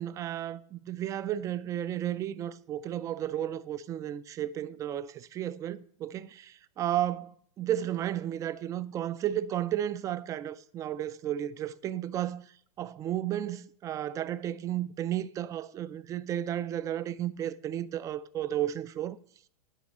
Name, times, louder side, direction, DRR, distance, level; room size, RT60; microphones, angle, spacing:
voice 1, 0.0-12.5 12.8-19.2, right 11 dB, 20° right, 0.3 m, -33 dB
10.5 x 5.8 x 6.4 m
hypercardioid pair, 130°, 18 cm